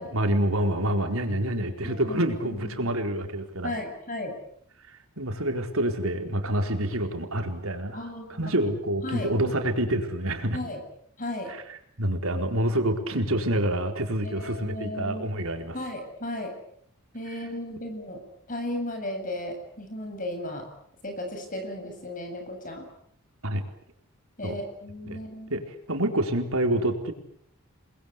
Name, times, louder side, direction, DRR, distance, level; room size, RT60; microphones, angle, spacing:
voice 1, 0.0-3.7 4.9-8.0 8.3-10.6 11.5-15.8 23.4-23.6 24.4-24.6 25.0-25.2 25.5-25.6 25.9-27.1, right 1 dB, 75° right, 5 dB, 4.4 m, -27 dB
voice 2, 1.8-2.9 3.6-4.3 7.9-8.7 9.0-9.3 10.5-10.8 11.2-11.5 14.2-15.5 15.7-16.5 17.1-18.2 18.5-20.7 21.0-22.9 24.4-25.5, left 1 dB, 40° left, 5 dB, 7.9 m, -35 dB
30.0 x 21.5 x 8.5 m, 0.68 s
head